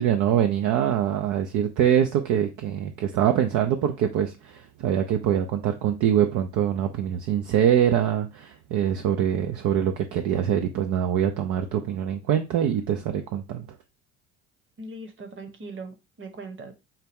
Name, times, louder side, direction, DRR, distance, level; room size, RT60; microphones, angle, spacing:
voice 1, 0.0-13.6, right 9 dB, 55° right, 0.6 m, -24 dB
voice 2, 14.8-16.7, right 2 dB, 35° right, 1.2 m, -40 dB
5.6 x 2.2 x 3.5 m
hypercardioid pair, 70°, 36 cm